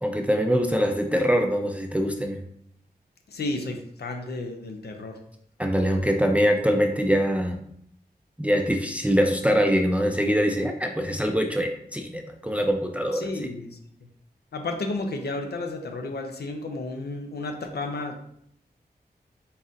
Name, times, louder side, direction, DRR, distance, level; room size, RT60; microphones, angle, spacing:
voice 1, 0.0-2.4 5.6-7.6 8.4-13.3, equal, 10° right, 3 dB, 0.4 m, -23 dB
voice 2, 3.3-5.2 13.1-13.8 14.5-18.2, left 2 dB, 80° left, 4 dB, 0.6 m, -32 dB
4.0 x 3.9 x 2.5 m, 0.70 s
wide cardioid pair, 65°, 17 cm